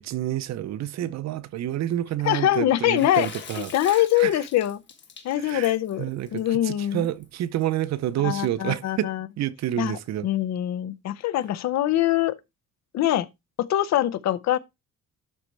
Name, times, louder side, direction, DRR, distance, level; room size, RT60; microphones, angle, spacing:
voice 1, 0.0-4.4 5.4-5.7 6.0-10.3, right 12 dB, 65° right, 0.6 m, -29 dB
voice 2, 2.2-3.3 3.6-4.8 5.2-7.1 8.2-9.3 9.8-12.3 12.9-13.3 13.6-14.6, left 13 dB, 65° left, 0.6 m, -24 dB
Water / Splash splatter, 3.0-7.4, left 6 dB, 40° left, 1.3 m, -44 dB
12.0 x 4.2 x 3.2 m
cardioid pair, 170°, 30 cm